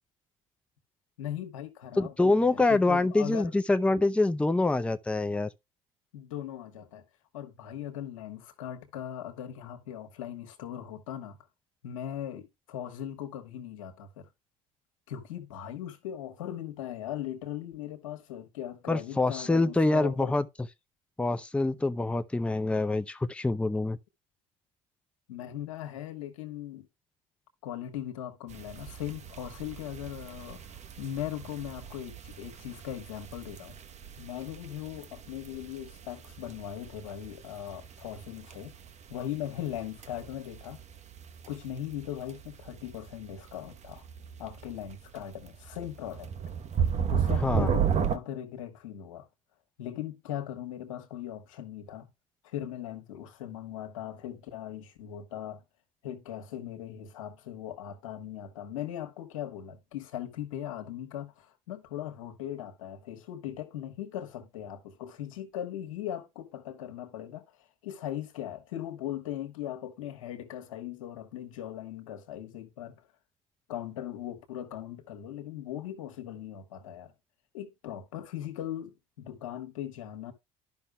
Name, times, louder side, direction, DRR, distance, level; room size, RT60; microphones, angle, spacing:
voice 1, 1.2-3.5 6.1-7.0 7.3-11.4 11.8-14.3 15.1-20.3 25.3-26.9 27.6-33.8 34.2-38.7 39.1-40.8 41.5-44.0 44.4-46.3 47.1-49.3 49.8-52.1 52.4-55.6 56.0-73.0 73.7-77.1 77.5-80.3, left 11 dB, 90° left, 1.2 m, -39 dB
voice 2, 2.0-5.5 18.9-20.4 21.2-24.0 47.4-47.7, left 2 dB, 5° left, 0.6 m, -25 dB
sound 1, 28.5-48.2, right 8 dB, 45° right, 0.9 m, -35 dB
12.0 x 5.5 x 2.2 m
hypercardioid pair, 70°, 17 cm